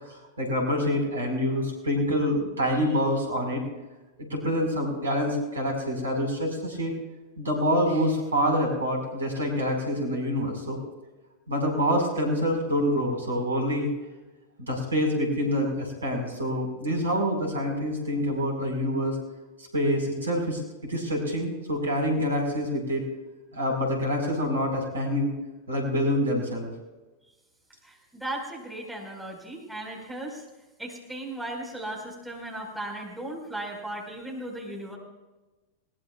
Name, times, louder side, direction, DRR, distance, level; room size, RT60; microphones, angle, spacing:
voice 1, 0.1-3.6 4.2-6.9 7.4-10.8 11.5-13.9 14.6-19.2 19.7-23.1 23.5-25.3 25.7-26.7, equal, 75° right, 2 dB, 4.7 m, -26 dB
voice 2, 27.8-30.4 30.8-35.0, right 1 dB, ahead, -1 dB, 4.8 m, -36 dB
21.0 x 20.5 x 2.4 m, 1.1 s
figure-of-eight pair, 90°, 0 cm